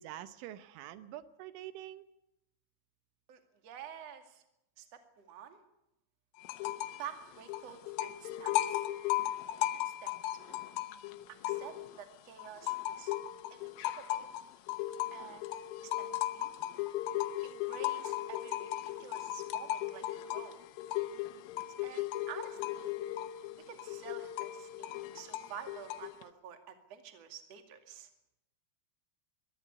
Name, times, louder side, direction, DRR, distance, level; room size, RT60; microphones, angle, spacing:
voice 1, 0.0-2.1, right 13 dB, 85° right, 12 dB, 3.5 m, -46 dB
voice 2, 3.3-4.4 4.8-5.6 7.0-8.9 9.7-10.6 11.5-13.1 13.5-14.3 15.1-15.4 15.8-16.5 17.4-18.7 19.0-20.0 20.3-20.6 21.3-21.4 21.8-22.9 23.7-28.1, right 9 dB, 45° right, 7 dB, 2.6 m, -49 dB
sound 1, 6.4-7.1 7.3-12.0 12.4-26.2, left 13 dB, 85° left, 3.6 m, -36 dB
22.0 x 15.0 x 9.7 m, 0.86 s
omnidirectional pair, 5.6 m